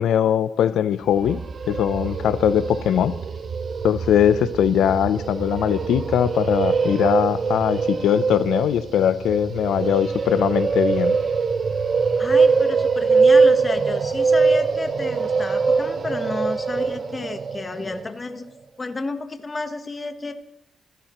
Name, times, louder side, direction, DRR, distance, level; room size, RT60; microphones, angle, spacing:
voice 1, 0.0-1.4 1.7-3.1 3.8-11.2, left 9 dB, 90° left, 13 dB, 0.5 m, -21 dB
sound 1, 1.1-18.1, right 4 dB, 40° right, 0.7 m, -22 dB
voice 2, 12.2-18.4 18.8-20.3, left 3 dB, 25° left, 7 dB, 1.1 m, -31 dB
26.5 x 10.5 x 3.0 m, 0.87 s
cardioid pair, 130°, 0 cm